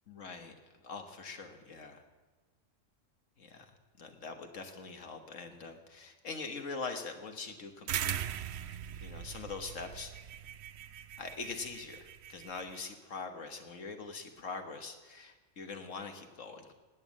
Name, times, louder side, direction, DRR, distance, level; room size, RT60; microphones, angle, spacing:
voice 1, 0.1-0.6 0.8-2.0 3.4-3.7 4.0-8.2 8.7-10.1 11.2-16.7, left 4 dB, 75° left, 5 dB, 1.8 m, -43 dB
sound 1, 7.9-12.8, right 10 dB, 65° right, 0.8 m, -40 dB
19.0 x 9.2 x 7.5 m, 1.3 s
omnidirectional pair, 1.3 m